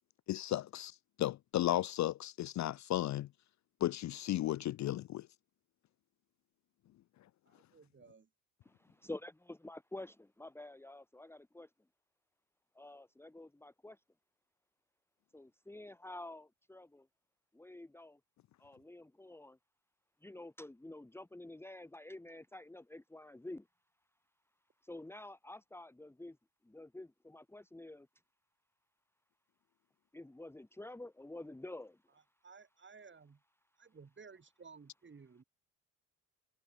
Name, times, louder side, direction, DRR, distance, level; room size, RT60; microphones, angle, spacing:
voice 1, 0.3-3.3 3.8-5.3, left 14 dB, 50° left, 0.7 m, -34 dB
voice 2, 7.5-8.3 32.4-33.4 33.8-35.4, right 5 dB, 30° right, 5.6 m, -56 dB
voice 3, 9.0-11.7 12.7-14.0 15.3-17.1 17.5-18.2 18.6-19.6 20.2-23.7 24.8-26.4 26.6-28.1 30.1-32.0, left 2 dB, 5° left, 1.3 m, -49 dB
hypercardioid pair, 65°, 38 cm